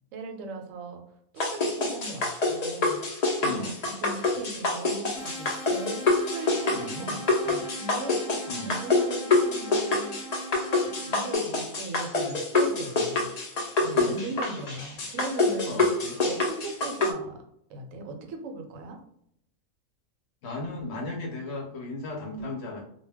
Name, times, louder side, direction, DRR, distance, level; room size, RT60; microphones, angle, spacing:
voice 1, 0.1-1.0 1.3-3.0 3.4-10.2 10.8-13.3 13.8-15.8 16.2-17.4 17.7-19.0, right 3 dB, 80° right, 4 dB, 0.9 m, -39 dB
sound 1, 1.4-17.1, left 3 dB, 85° left, 0.3 m, -26 dB
voice 2, 3.4-3.7 6.7-7.1 8.5-8.7 13.9-14.2 15.7-16.2 20.4-22.8, left 2 dB, 65° left, 2 dB, 0.7 m, -35 dB
sound 2, 5.2-11.4, right 1 dB, 25° left, 0.6 m, -41 dB
2.2 x 2.1 x 3.3 m, 0.71 s
omnidirectional pair, 1.4 m